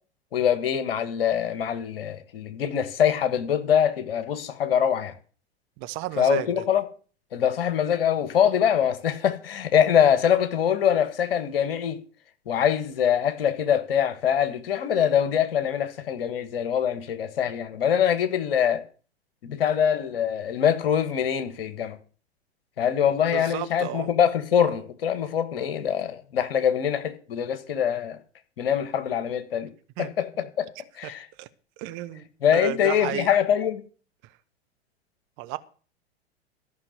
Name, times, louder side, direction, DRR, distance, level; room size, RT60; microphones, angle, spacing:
voice 1, 0.3-5.1 6.2-6.8 7.3-12.0 12.4-18.8 19.4-22.0 22.8-28.2 28.6-29.7 30.0-30.6 31.0-31.3 32.4-33.8, left 9 dB, 60° left, 1.6 m, -24 dB
voice 2, 5.8-6.5 23.0-24.1 30.0-30.1 31.0-31.1 31.4-31.5 31.8-32.3 32.5-33.3 35.4-35.6, right 16 dB, 40° right, 1.0 m, -32 dB
13.5 x 6.0 x 7.7 m
figure-of-eight pair, 95°, 32 cm